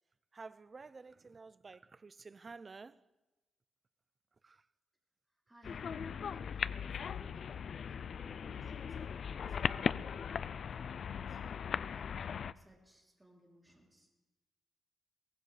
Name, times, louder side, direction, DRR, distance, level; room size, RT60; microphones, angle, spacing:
voice 1, 0.3-3.1 4.4-4.7, right 4 dB, 30° right, 0.5 m, -51 dB
voice 2, 5.5-10.4 10.8-11.4 11.8-14.1, right 1 dB, 10° right, 3.2 m, -63 dB
sound 1, 5.6-12.5, left 7 dB, 50° left, 0.4 m, -38 dB
22.5 x 18.5 x 3.3 m
cardioid pair, 125°, 0 cm